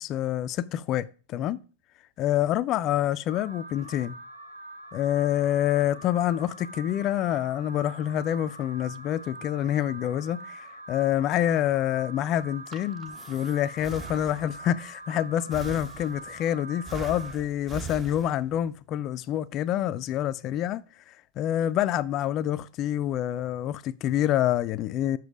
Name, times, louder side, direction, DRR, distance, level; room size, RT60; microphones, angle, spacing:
voice 1, 0.0-1.6 2.2-4.2 4.9-25.2, left 11 dB, 35° left, 0.3 m, -27 dB
Alarm, 3.3-17.3, right 2 dB, 75° right, 0.8 m, -44 dB
Breathing, 12.4-14.7 15.5-16.4 16.9-18.7, right 6 dB, 20° right, 0.7 m, -41 dB
7.0 x 6.0 x 4.9 m
figure-of-eight pair, 90°, 0 cm